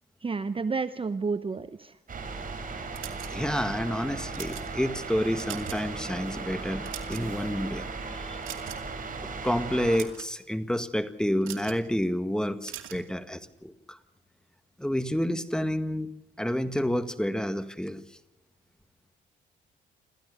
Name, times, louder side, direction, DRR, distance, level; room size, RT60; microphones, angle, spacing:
voice 1, 0.2-2.0, right 4 dB, 25° right, 12 dB, 0.9 m, -30 dB
sound 1, 2.1-10.0, right 4 dB, 45° right, 4.9 m, -37 dB
sound 2, 2.9-3.6 4.2-4.7 5.2-5.9 6.2-6.4 6.7-7.5 8.4-9.0 9.7-10.3 11.4-11.8 12.6-13.1, right 12 dB, 90° right, 2.5 m, -41 dB
voice 2, 3.3-8.5 9.4-14.0 14.8-16.1 16.4-18.1, equal, 5° left, 11 dB, 1.8 m, -29 dB
27.5 x 15.0 x 6.7 m, 0.94 s
cardioid pair, 90°, 20 cm